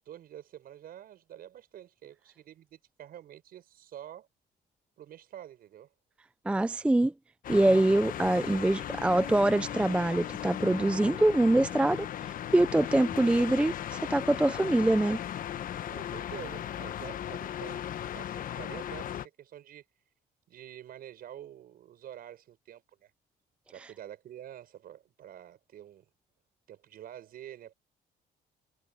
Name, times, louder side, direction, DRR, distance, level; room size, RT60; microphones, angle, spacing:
voice 1, 0.1-4.3 5.0-5.9 8.6-9.2 15.9-19.8 20.5-23.1 23.7-26.1 26.7-27.7, right 11 dB, 60° right, 6.9 m, -48 dB
voice 2, 6.5-7.1 7.5-12.1 12.5-15.2, right 1 dB, 5° right, 0.4 m, -24 dB
sound 1, 7.4-19.3, left 10 dB, 55° left, 1.1 m, -37 dB
cardioid pair, 110°, 17 cm